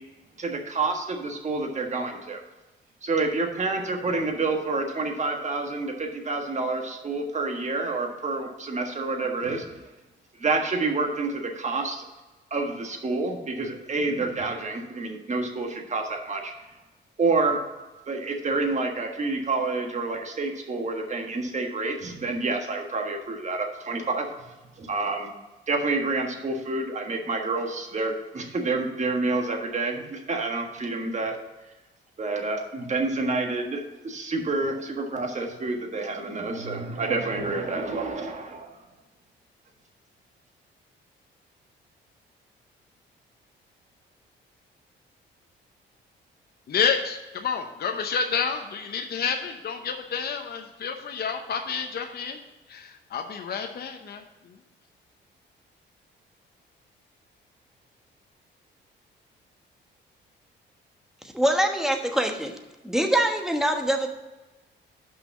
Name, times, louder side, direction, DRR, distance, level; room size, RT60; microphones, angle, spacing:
voice 1, 0.4-2.4 3.0-9.6 10.4-12.1 12.5-16.5 17.2-17.6 18.1-24.3 24.8-25.3 25.7-31.4 32.2-38.7, right 3 dB, 35° right, 3 dB, 1.6 m, -28 dB
voice 2, 46.7-52.4 52.7-54.6, left 6 dB, 55° left, 5 dB, 0.8 m, -29 dB
voice 3, 61.3-62.5 62.8-64.1, right 1 dB, ahead, 4 dB, 1.2 m, -24 dB
5.8 x 5.6 x 6.9 m, 1.1 s
cardioid pair, 90°, 20 cm